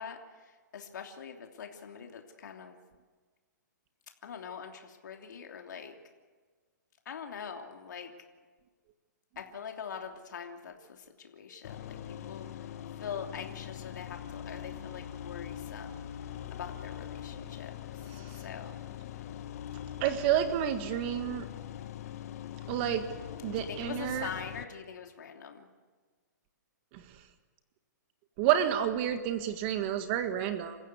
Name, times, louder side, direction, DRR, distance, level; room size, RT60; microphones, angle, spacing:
voice 1, 0.0-2.8 4.2-5.9 7.0-8.1 9.4-12.5 13.0-16.0 16.5-17.7 18.4-18.9 23.5-25.7, left 7 dB, 70° left, 3 dB, 3.0 m, -43 dB
sound 1, 11.6-24.6, left 10 dB, 50° left, 1.4 m, -42 dB
voice 2, 20.0-21.5 22.7-23.1 23.4-24.3 26.9-27.0 28.4-30.8, right 10 dB, 35° right, 8 dB, 1.6 m, -29 dB
28.0 x 15.5 x 8.3 m, 1.4 s
hypercardioid pair, 145°, 10 cm